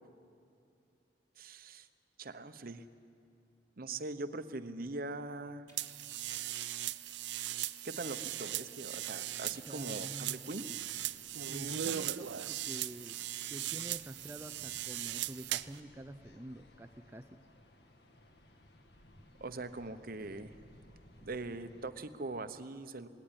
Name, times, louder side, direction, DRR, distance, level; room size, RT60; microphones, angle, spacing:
voice 1, 1.4-1.9 2.2-2.8 3.8-5.6 7.8-10.7 19.4-20.5 21.2-23.1, right 2 dB, 55° right, 11 dB, 0.9 m, -42 dB
sound 1, 5.6-5.8 6.3-8.7 9.2-12.2, left 1 dB, 20° left, 5.1 m, -64 dB
sound 2, 5.8-15.8, right 12 dB, 85° right, 0.5 m, -39 dB
sound 3, 9.4-21.9, left 1 dB, 65° left, 2.0 m, -61 dB
voice 2, 9.7-10.4 11.5-13.2 13.5-17.4, right 1 dB, 15° right, 7 dB, 0.5 m, -47 dB
19.5 x 17.5 x 9.9 m, 2.5 s
head